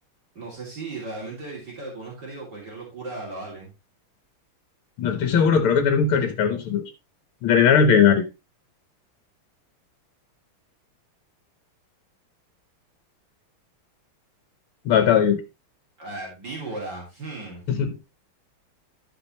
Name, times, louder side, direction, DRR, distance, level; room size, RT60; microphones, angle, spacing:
voice 1, 0.4-3.7 16.0-17.7, right 2 dB, 50° right, -3 dB, 3.5 m, -36 dB
voice 2, 5.0-6.8 7.4-8.3 14.9-15.4 17.7-18.0, left 7 dB, 80° left, 8 dB, 1.9 m, -19 dB
12.0 x 6.1 x 3.1 m, 0.26 s
omnidirectional pair, 2.3 m